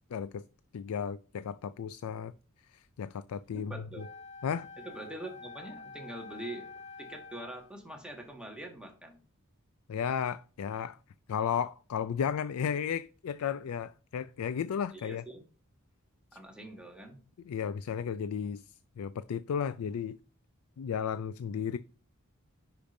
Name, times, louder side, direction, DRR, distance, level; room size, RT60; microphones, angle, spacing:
voice 1, 0.1-0.4 0.7-2.3 2.7-4.1 4.4-4.7 9.9-11.0 11.3-15.2 17.4-18.6 19.0-20.2 20.8-21.8, left 7 dB, 75° left, 0.4 m, -34 dB
voice 2, 3.5-4.0 4.8-6.7 7.0-9.2 14.9-15.4 16.3-17.2, right 1 dB, 5° right, 1.6 m, -44 dB
Wind instrument woodwind instrument, 4.0-7.8, left 4 dB, 30° left, 1.5 m, -48 dB
10.0 x 5.0 x 2.6 m
head